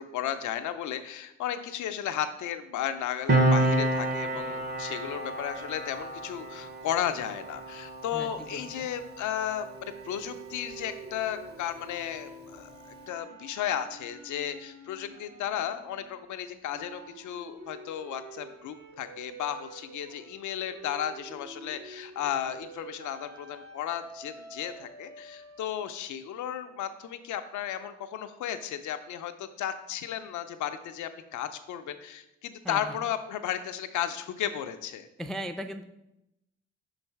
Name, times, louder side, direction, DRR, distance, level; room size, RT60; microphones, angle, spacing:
voice 1, 0.0-35.1, left 10 dB, 85° left, 9 dB, 0.5 m, -34 dB
Piano, 3.3-10.3 10.6-10.8, right 2 dB, 35° right, 0.7 m, -29 dB
voice 2, 8.1-8.9 32.6-33.0 35.2-35.8, equal, ahead, 8 dB, 0.4 m, -38 dB
sound 1, 9.6-16.2 16.6-25.6, right 3 dB, 75° right, 1.1 m, -48 dB
5.3 x 3.9 x 4.5 m, 0.87 s
cardioid pair, 60°, 29 cm